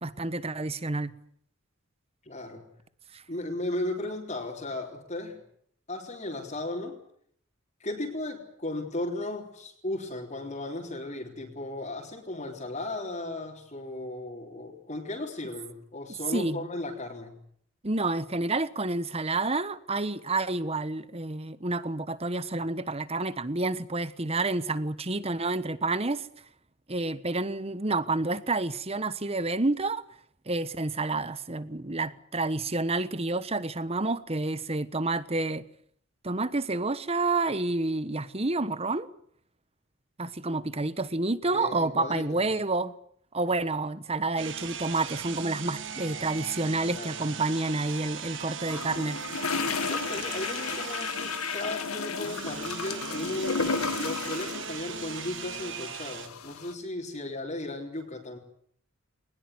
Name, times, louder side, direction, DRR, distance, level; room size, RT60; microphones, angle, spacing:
voice 1, 0.0-1.1 3.1-3.2 16.3-16.7 17.8-26.3 26.9-30.0 30.5-35.6 36.2-39.1 40.2-42.9 43.3-49.2, right 2 dB, 30° right, 1.2 m, -29 dB
voice 2, 2.2-2.6 3.3-5.4 5.9-7.0 7.8-17.4 41.5-42.4 46.9-47.1 49.8-58.4, left 2 dB, 35° left, 3.8 m, -35 dB
sound 1, 44.4-56.3, right 7 dB, 55° right, 1.9 m, -39 dB
sound 2, 48.7-56.7, left 5 dB, 85° left, 2.0 m, -33 dB
21.5 x 20.5 x 9.5 m
head